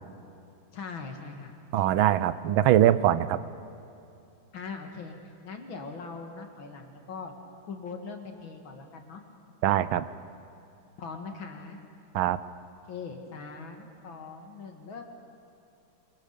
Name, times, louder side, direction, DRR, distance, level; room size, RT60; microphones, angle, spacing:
voice 1, 0.7-1.5 4.5-5.2 5.4-7.3 7.6-9.2 11.0-11.8 12.9-15.0, left 4 dB, 80° left, 4 dB, 2.8 m, -41 dB
voice 2, 1.7-3.4 9.6-10.1 12.1-12.4, right 12 dB, 85° right, 15 dB, 1.5 m, -22 dB
26.0 x 22.0 x 6.8 m, 2.8 s
omnidirectional pair, 2.1 m